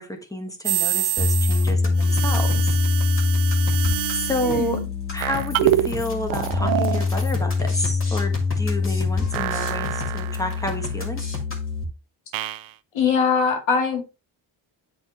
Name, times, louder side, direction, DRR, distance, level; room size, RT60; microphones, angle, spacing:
voice 1, 0.0-2.8 4.1-4.9 5.1-11.3, equal, 5° left, 1.2 m, -30 dB
sound 1, 0.6-1.7 2.0-4.7 5.2-5.9 6.3-7.1 9.3-10.8 12.3-12.7, right 13 dB, 75° right, 0.6 m, -26 dB
sound 2, 1.2-11.8, left 3 dB, 25° left, 2.2 m, -24 dB
voice 2, 4.4-4.9 12.9-14.0, left 5 dB, 80° left, 2.3 m, -22 dB
9.3 x 4.1 x 3.4 m
wide cardioid pair, 145°, 47 cm